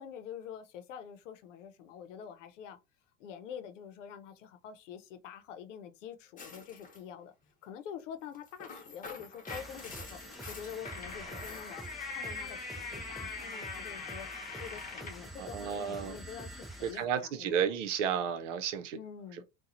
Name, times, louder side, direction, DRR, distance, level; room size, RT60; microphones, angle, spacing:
voice 1, 0.0-2.8 3.2-7.3 7.6-17.8 18.9-19.4, left 8 dB, 90° left, 0.8 m, -46 dB
sound 1, 6.4-7.0 8.3-15.3, left 4 dB, 20° left, 1.0 m, -43 dB
sound 2, 9.5-17.0, right 1 dB, ahead, 0.6 m, -47 dB
voice 2, 15.4-16.2 16.8-19.0, right 8 dB, 85° right, 0.8 m, -32 dB
4.2 x 2.3 x 2.6 m
supercardioid pair, 120°, 36 cm